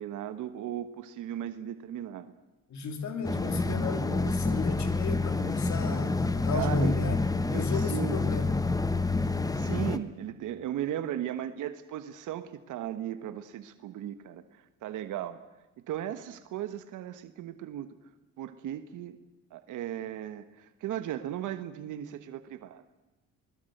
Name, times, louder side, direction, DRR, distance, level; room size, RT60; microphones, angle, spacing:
voice 1, 0.0-2.3 5.8-6.1 6.5-6.9 7.5-8.2 9.5-15.4 15.9-17.9 18.4-19.2 19.5-22.8, right 11 dB, 85° right, 11 dB, 1.4 m, -37 dB
voice 2, 2.7-7.2 7.5-8.6, left 3 dB, 65° left, 7 dB, 3.5 m, -33 dB
sound 1, 3.2-10.0, left 3 dB, 10° left, 1.3 m, -28 dB
23.0 x 21.0 x 7.9 m, 1.0 s
cardioid pair, 90°, 30 cm